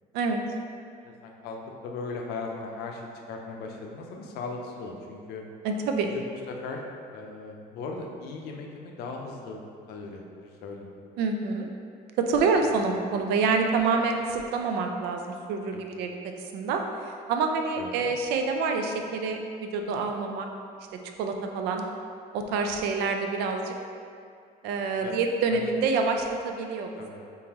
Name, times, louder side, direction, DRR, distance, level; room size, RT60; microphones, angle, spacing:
voice 1, 1.0-1.6 1.8-3.0 3.3-5.4 6.1-6.8 7.1-9.6 9.9-10.9 15.7-15.9 17.8-18.2 25.0-25.2 25.5-25.7 27.0-27.3, left 3 dB, 75° left, 1 dB, 0.5 m, -38 dB
voice 2, 5.6-6.1 11.2-11.7 12.2-15.2 15.5-16.1 16.5-16.8 17.3-20.5 21.2-21.8 22.3-23.7 24.6-26.9, right 4 dB, 85° right, 4 dB, 0.4 m, -27 dB
3.9 x 3.7 x 2.9 m, 2.3 s
cardioid pair, 175°, 16 cm